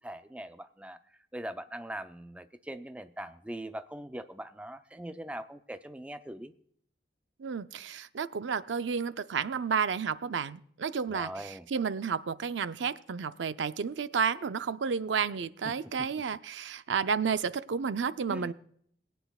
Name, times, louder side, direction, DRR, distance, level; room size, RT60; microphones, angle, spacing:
voice 1, 0.0-1.0 1.3-6.5 11.1-11.6 18.3-18.5, right 1 dB, 5° right, 9 dB, 0.4 m, -41 dB
voice 2, 7.4-18.5, right 6 dB, 90° right, 13 dB, 0.5 m, -31 dB
21.5 x 9.2 x 2.3 m, 0.65 s
head